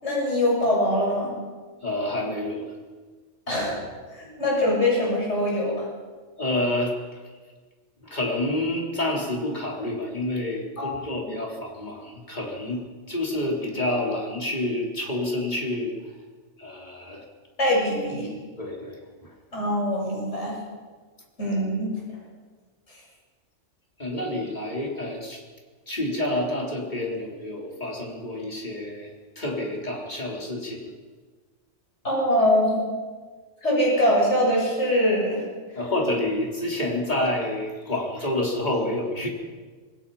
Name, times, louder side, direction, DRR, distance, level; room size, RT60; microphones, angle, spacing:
voice 1, 0.0-1.3 3.5-3.8 4.1-5.9 10.8-10.9 11.2-11.3 17.6-18.3 19.5-20.6 21.4-21.9 32.0-32.7 33.6-35.4, left 1 dB, 70° left, -3 dB, 7.3 m, -23 dB
voice 2, 1.8-2.7 6.4-7.2 8.0-16.0 16.6-17.2 18.6-19.3 24.0-25.4 25.9-30.9 35.7-39.3, left 1 dB, 40° left, -1 dB, 4.2 m, -28 dB
27.0 x 19.5 x 5.8 m, 1.4 s
omnidirectional pair, 1.2 m